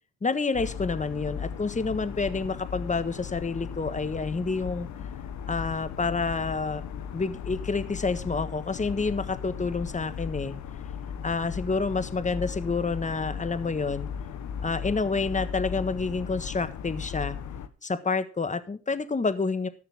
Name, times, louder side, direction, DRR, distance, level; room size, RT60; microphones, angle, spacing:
voice 1, 0.2-4.9 5.5-6.9 7.1-10.6 11.2-14.1 14.6-17.4 17.8-19.7, left 4 dB, 25° left, 12 dB, 1.4 m, -28 dB
sound 1, 0.5-17.7, left 7 dB, 70° left, 1.2 m, -37 dB
13.5 x 6.6 x 6.1 m, 0.36 s
supercardioid pair, 55°, 30 cm